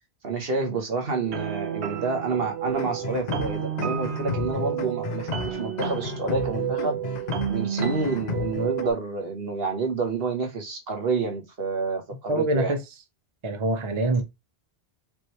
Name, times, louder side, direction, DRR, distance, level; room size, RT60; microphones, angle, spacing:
voice 1, 0.2-7.0 7.5-12.7, right 4 dB, 65° right, 1.3 m, -29 dB
sound 1, 1.2-8.9, right 10 dB, 85° right, 1.0 m, -31 dB
sound 2, 2.7-8.8, left 4 dB, 50° left, 0.6 m, -33 dB
voice 2, 12.3-12.8 13.4-14.2, right 1 dB, 30° right, 0.7 m, -24 dB
5.2 x 3.2 x 3.1 m
omnidirectional pair, 1.1 m